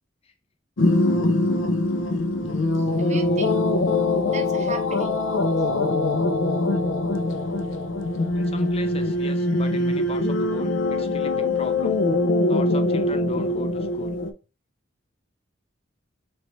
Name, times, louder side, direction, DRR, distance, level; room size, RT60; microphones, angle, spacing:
sound 1, 0.8-14.3, left 2 dB, 75° left, 0.6 m, -23 dB
voice 1, 2.6-3.6 3.9-5.2 5.5-5.7, right 4 dB, 35° right, 0.6 m, -37 dB
voice 2, 8.3-12.0 12.5-14.2, left 3 dB, 30° left, 0.5 m, -37 dB
4.1 x 3.1 x 3.0 m
head